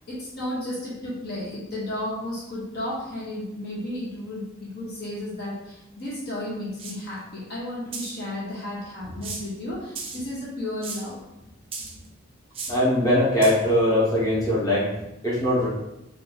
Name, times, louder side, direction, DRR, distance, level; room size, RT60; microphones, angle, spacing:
voice 1, 0.1-11.2, left 1 dB, 50° left, -6 dB, 0.8 m, -33 dB
sound 1, 6.1-6.2 6.8-7.0 7.9-8.2 9.2-9.6 10.0-10.2 10.8-11.1 11.7-12.1 12.5-12.8 13.4-13.5, right 4 dB, 25° right, 0.5 m, -35 dB
voice 2, 12.7-15.7, left 1 dB, 20° left, -8 dB, 0.9 m, -21 dB
2.6 x 2.4 x 3.8 m, 0.90 s
head